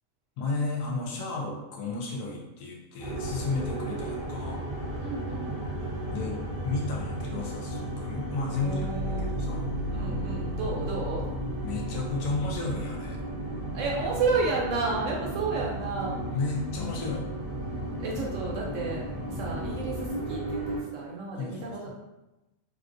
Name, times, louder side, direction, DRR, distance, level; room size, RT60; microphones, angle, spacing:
voice 1, 0.4-4.6 5.8-9.7 11.6-13.2 16.2-17.3 19.3-19.6 21.4-21.9, left 3 dB, 80° left, -1 dB, 1.2 m, -33 dB
sound 1, 3.0-20.8, right 1 dB, 20° right, 0.6 m, -34 dB
voice 2, 5.0-5.6 8.6-11.2 13.7-16.2 18.0-20.6 20.9-21.9, right 3 dB, 70° right, -3 dB, 0.8 m, -32 dB
sound 2, 8.3-15.4, equal, 30° left, 1.1 m, -37 dB
3.5 x 2.3 x 2.5 m, 0.99 s
omnidirectional pair, 1.6 m